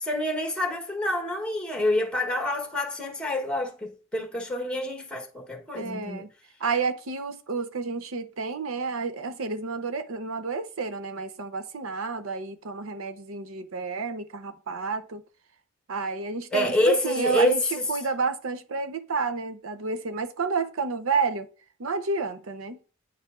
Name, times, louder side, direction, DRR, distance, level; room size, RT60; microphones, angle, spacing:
voice 1, 0.0-6.2 16.5-17.6, left 1 dB, 5° left, 1.2 m, -27 dB
voice 2, 5.7-6.3 6.6-15.2 15.9-21.5 21.8-22.8, right 4 dB, 75° right, 0.7 m, -30 dB
9.3 x 4.6 x 2.5 m
head